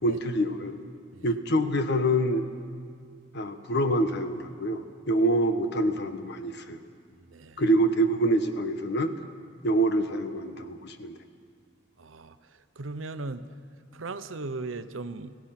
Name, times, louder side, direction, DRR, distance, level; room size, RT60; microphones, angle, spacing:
voice 1, 0.0-0.7 1.2-2.4 3.3-6.8 7.6-9.1 9.6-11.2, right 1 dB, 60° left, 8 dB, 1.3 m, -26 dB
voice 2, 7.3-7.6 12.0-12.4 12.8-13.4 13.9-15.3, right 3 dB, 80° right, 11 dB, 0.9 m, -37 dB
29.0 x 16.5 x 6.0 m, 2.1 s
head